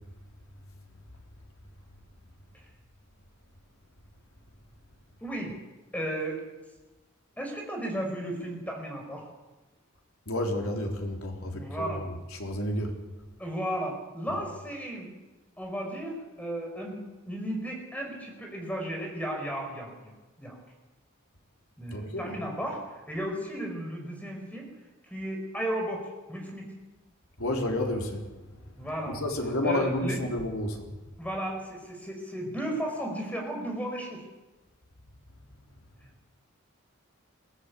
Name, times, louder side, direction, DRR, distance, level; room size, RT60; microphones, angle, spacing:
voice 1, 5.2-5.6 5.9-6.4 7.4-9.2 11.5-12.1 13.4-15.1 15.6-20.1 20.4-20.6 21.8-24.7 25.0-26.7 28.8-29.2 29.6-30.2 31.2-34.2, right 1 dB, 5° left, 2 dB, 5.1 m, -34 dB
voice 2, 10.3-13.0 14.3-14.4 21.9-22.3 27.4-30.9, left 1 dB, 80° left, 2 dB, 3.7 m, -31 dB
22.0 x 16.0 x 8.4 m, 1.1 s
head